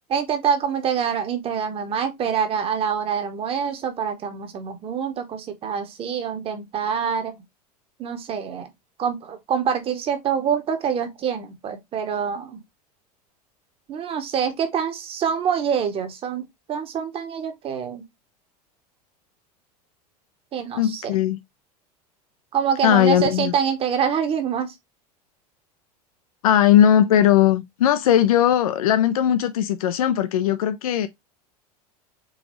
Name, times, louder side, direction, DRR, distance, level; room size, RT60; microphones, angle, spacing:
voice 1, 0.1-7.4 8.0-8.7 9.0-12.6 13.9-18.0 20.5-21.2 22.5-24.7, right 7 dB, 25° right, 0.9 m, -25 dB
voice 2, 20.8-21.4 22.8-23.5 26.4-31.1, left 10 dB, 65° left, 0.5 m, -18 dB
3.9 x 3.8 x 3.0 m
figure-of-eight pair, 80°, 20 cm